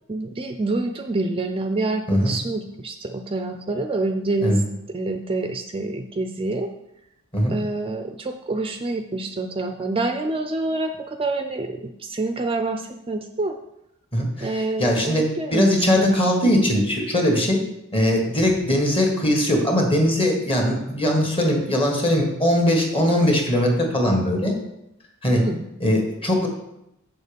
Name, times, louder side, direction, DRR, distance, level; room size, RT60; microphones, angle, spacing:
voice 1, 0.1-4.6 4.9-6.7 7.5-13.6 14.4-16.1 25.4-25.6, right 2 dB, 25° right, 6 dB, 0.5 m, -27 dB
voice 2, 14.1-15.3 15.5-17.6 17.9-24.5 25.2-25.4 25.8-26.5, equal, 25° left, 1 dB, 1.8 m, -20 dB
7.0 x 6.6 x 5.2 m, 0.85 s
head